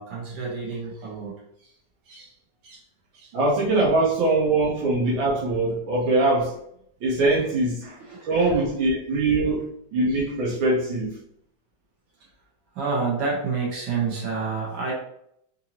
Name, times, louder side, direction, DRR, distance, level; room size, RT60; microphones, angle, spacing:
voice 1, 0.0-1.3 1.6-1.7 2.1-2.3 2.6-2.8 3.1-3.3 8.0-8.3 10.1-10.2 12.8-14.9, right 4 dB, 75° right, -4 dB, 2.0 m, -29 dB
voice 2, 3.3-6.5 7.0-8.0 8.2-9.6 9.9-11.1, right 2 dB, 90° right, -6 dB, 1.8 m, -22 dB
4.5 x 2.7 x 2.9 m, 0.71 s
omnidirectional pair, 2.0 m